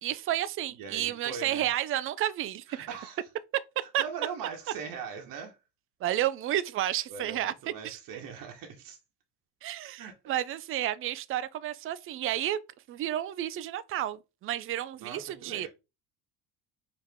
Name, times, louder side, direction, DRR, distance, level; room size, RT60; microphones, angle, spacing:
voice 1, 0.0-2.9 3.5-3.6 3.9-4.0 6.0-8.0 9.6-12.6 12.9-15.7, right 12 dB, 35° right, 0.4 m, -31 dB
voice 2, 0.7-1.7 2.7-3.2 4.0-5.5 7.1-9.0 10.0-10.1 15.0-15.7, right 6 dB, 65° right, 1.2 m, -40 dB
4.8 x 2.9 x 3.5 m
supercardioid pair, 80°, 37 cm